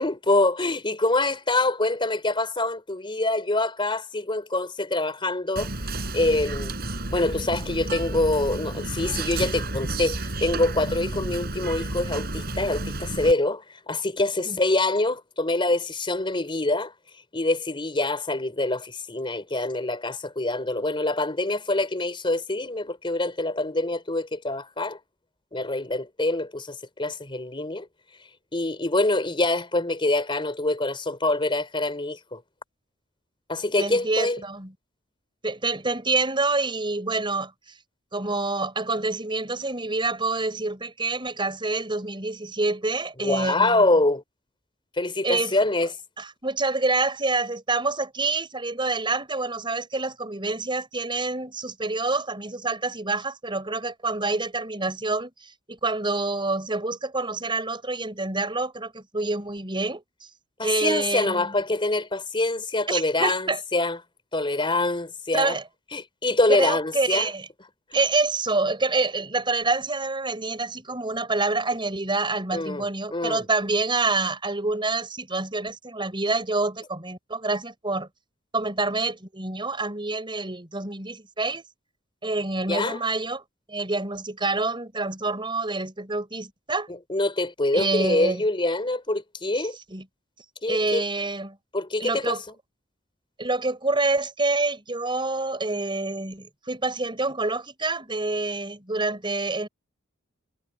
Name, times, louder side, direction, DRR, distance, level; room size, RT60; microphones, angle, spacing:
voice 1, 0.0-5.7 6.1-6.7 7.1-16.9 17.3-25.0 25.5-27.9 28.5-32.4 33.5-34.4 43.2-44.2 45.0-46.0 60.6-64.0 64.3-65.6 65.9-67.3 67.9-68.0 72.5-73.4 82.7-83.0 87.1-89.8 90.6-91.0 91.7-92.4, left 2 dB, 25° left, 3.9 m, -25 dB
Whispering, 5.6-13.3, right 2 dB, 55° right, 4.8 m, -31 dB
voice 2, 33.8-34.7 35.4-37.5 38.1-43.8 45.2-45.5 46.2-60.0 60.6-61.6 62.9-63.6 65.3-65.6 66.5-67.5 67.9-78.1 78.5-81.6 82.2-83.4 83.7-86.9 87.7-88.4 89.7-90.0 90.7-91.6 92.0-92.4 93.4-99.7, right 3 dB, 25° right, 5.6 m, -27 dB
head